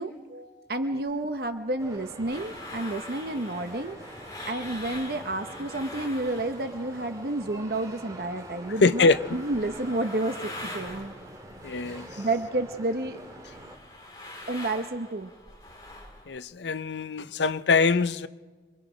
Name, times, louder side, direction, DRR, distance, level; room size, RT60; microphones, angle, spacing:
voice 1, 0.0-4.0 4.5-11.1 12.2-13.2 14.5-15.3, right 2 dB, 55° right, 0.9 m, -30 dB
sound 1, 1.1-7.8 8.0-12.6 12.9-16.4, left 1 dB, 20° left, 3.3 m, -44 dB
sound 2, 1.8-13.8, right 1 dB, 20° right, 2.1 m, -45 dB
voice 2, 8.8-9.2 11.6-12.1 16.3-18.3, left 4 dB, 80° left, 0.6 m, -23 dB
27.0 x 23.5 x 5.0 m
head